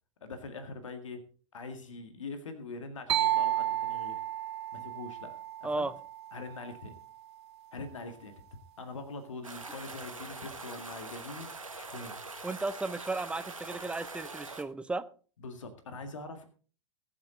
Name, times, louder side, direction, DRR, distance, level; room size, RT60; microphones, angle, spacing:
voice 1, 0.2-1.2 1.5-4.2 4.7-5.9 6.3-7.0 7.7-8.4 8.8-12.2 15.4-16.5, left 3 dB, 70° left, 2.0 m, -43 dB
sound 1, 3.1-6.8, right 13 dB, 55° right, 0.5 m, -32 dB
sound 2, 9.4-14.6, right 3 dB, 85° right, 1.7 m, -43 dB
voice 2, 12.4-15.0, right 3 dB, 5° right, 0.8 m, -34 dB
20.5 x 7.4 x 3.9 m
figure-of-eight pair, 95°, 17 cm